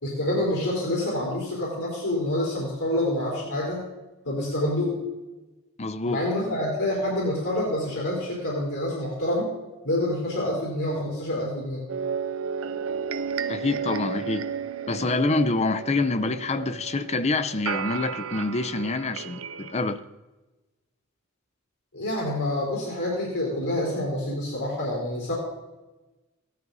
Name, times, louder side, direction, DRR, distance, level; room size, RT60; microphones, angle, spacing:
voice 1, 0.0-3.9 4.2-5.0 6.0-9.5 9.8-11.8 21.9-25.3, left 1 dB, 80° left, -5 dB, 4.4 m, -27 dB
voice 2, 5.8-6.2 13.5-14.5 14.9-20.0, left 3 dB, 30° left, 13 dB, 0.6 m, -26 dB
sound 1, 11.9-20.0, right 6 dB, 75° right, 0.6 m, -33 dB
15.5 x 12.5 x 4.0 m, 1.1 s
head